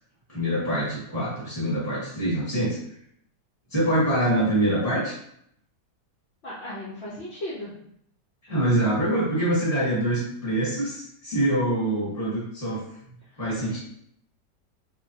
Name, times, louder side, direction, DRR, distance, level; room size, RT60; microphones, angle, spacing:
voice 1, 0.3-2.8 3.7-5.1 8.4-12.8 13.4-13.8, right 1 dB, 10° right, -8 dB, 0.8 m, -25 dB
voice 2, 6.4-7.7 13.3-13.8, left 1 dB, 70° left, -6 dB, 0.6 m, -37 dB
2.9 x 2.1 x 2.7 m, 0.70 s
omnidirectional pair, 1.8 m